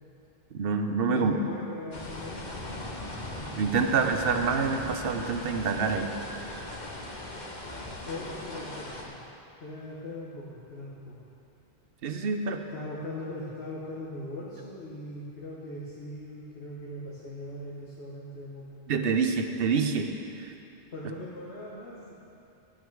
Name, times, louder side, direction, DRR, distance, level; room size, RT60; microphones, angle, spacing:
voice 1, 0.5-1.3 3.6-6.1 12.0-12.6 18.9-20.1 20.4-20.5, right 5 dB, 70° right, 6 dB, 0.9 m, -26 dB
voice 2, 1.1-2.5 8.1-9.2 9.6-11.2 12.7-18.6 20.9-22.1, left 1 dB, 85° left, -7 dB, 1.5 m, -40 dB
sound 1, 1.9-9.0, left 1 dB, 45° left, 1.2 m, -39 dB
11.5 x 8.3 x 4.7 m, 2.7 s
omnidirectional pair, 1.0 m